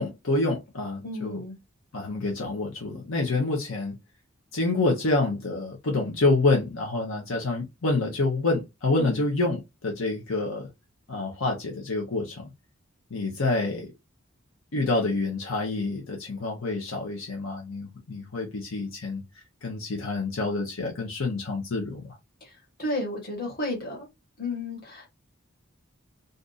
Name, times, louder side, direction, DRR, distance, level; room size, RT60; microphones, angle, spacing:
voice 1, 0.0-1.4 1.9-4.0 4.5-10.7 11.1-12.5 13.1-13.9 14.7-19.2 19.6-22.1, left 2 dB, 75° left, 0.8 m, -27 dB
voice 2, 1.0-1.5 9.0-9.2 22.4-24.1 24.4-25.1, left 2 dB, 45° left, 1.3 m, -33 dB
2.6 x 2.4 x 3.8 m
head